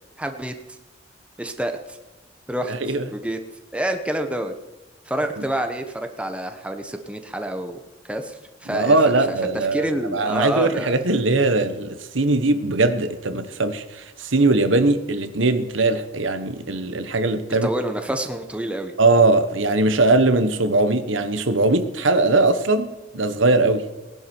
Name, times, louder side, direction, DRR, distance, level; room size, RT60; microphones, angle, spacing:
voice 1, 0.2-0.5 1.4-2.0 2.5-3.4 3.7-4.5 5.1-7.8 8.0-9.0 9.5-11.0 17.6-18.9, right 1 dB, 5° right, 5 dB, 1.0 m, -27 dB
voice 2, 2.7-3.0 8.7-17.7 19.0-23.9, right 2 dB, 80° right, 10 dB, 1.2 m, -20 dB
19.0 x 11.0 x 4.5 m, 1.1 s
head